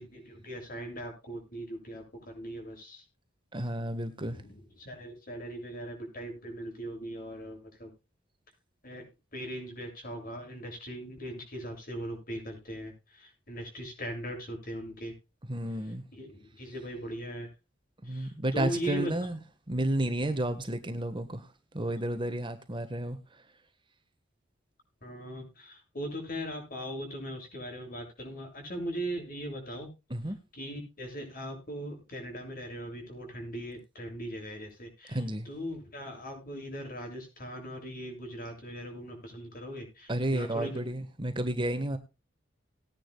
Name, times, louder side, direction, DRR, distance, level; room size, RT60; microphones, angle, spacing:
voice 1, 0.0-3.0 4.2-7.9 8.8-15.1 16.1-17.5 18.0-19.1 25.0-29.9 30.5-40.8, equal, 50° left, 7.5 m, -39 dB
voice 2, 3.5-4.4 15.5-16.0 18.0-19.4 19.7-21.5 21.7-23.4 30.1-30.4 35.1-35.5 40.1-42.0, right 1 dB, 25° right, 1.4 m, -32 dB
19.5 x 10.0 x 2.3 m
head